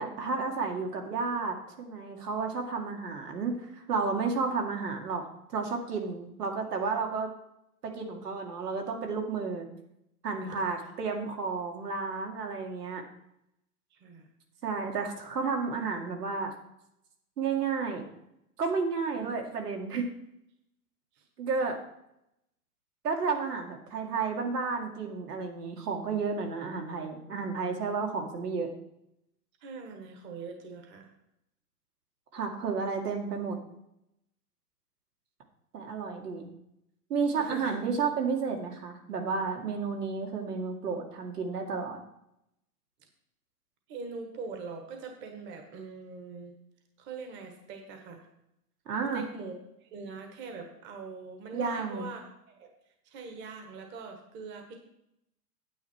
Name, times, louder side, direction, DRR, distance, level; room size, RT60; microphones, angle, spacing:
voice 1, 0.0-3.5 3.9-5.2 5.5-7.3 7.8-9.7 10.2-13.0 14.6-16.5 17.4-18.0 18.6-20.1 21.4-21.8 23.0-28.7 32.3-33.6 35.7-36.5 37.1-42.0 48.9-49.2 51.5-52.1, right 5 dB, 85° right, 2 dB, 2.4 m, -32 dB
voice 2, 13.9-14.3 19.2-19.3 21.1-21.2 29.6-31.1 37.4-37.8 43.9-46.6 47.0-48.3 49.1-52.7 53.0-54.8, right 4 dB, 25° right, 4 dB, 1.4 m, -43 dB
9.4 x 8.3 x 4.5 m, 0.80 s
hypercardioid pair, 145°, 46 cm